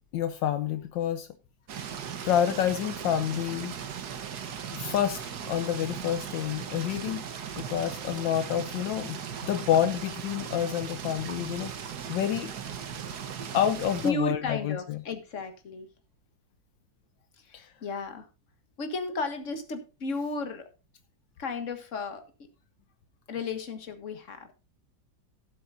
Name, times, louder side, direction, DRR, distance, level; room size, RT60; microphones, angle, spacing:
voice 1, 0.1-1.3 2.2-3.7 4.7-5.2 5.5-11.7 12.1-12.5 13.5-15.0 17.5-17.7, left 10 dB, 75° left, 1.4 m, -28 dB
sound 1, 1.7-14.1, right 7 dB, 60° right, 1.5 m, -38 dB
voice 2, 14.0-15.9 17.4-18.3 18.8-20.6 21.4-22.2 23.3-24.5, left 3 dB, 40° left, 1.8 m, -34 dB
16.5 x 7.9 x 2.6 m
omnidirectional pair, 2.1 m